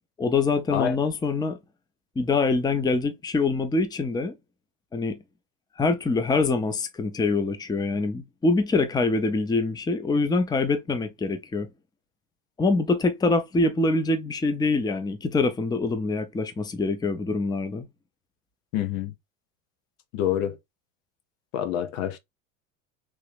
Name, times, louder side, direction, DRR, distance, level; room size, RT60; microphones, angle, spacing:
voice 1, 0.2-1.6 2.2-4.4 4.9-5.2 5.8-11.7 12.6-17.9, left 3 dB, 10° left, 0.5 m, -24 dB
voice 2, 18.7-19.1 20.1-20.6 21.5-22.2, left 10 dB, 75° left, 0.8 m, -27 dB
3.1 x 2.9 x 3.2 m
hypercardioid pair, 85°, 40 cm